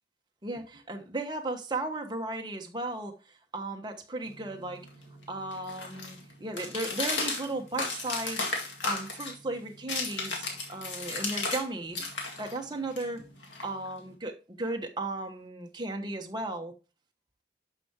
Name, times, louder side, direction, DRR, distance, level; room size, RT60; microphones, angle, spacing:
voice 1, 0.4-3.2 3.5-4.9 5.3-8.4 8.8-12.1 12.4-13.3 13.6-16.7, right 2 dB, 25° right, 1.1 m, -35 dB
sound 1, 4.3-11.7 11.9-14.1, left 3 dB, 80° left, 2.0 m, -35 dB
11.5 x 5.7 x 2.9 m
head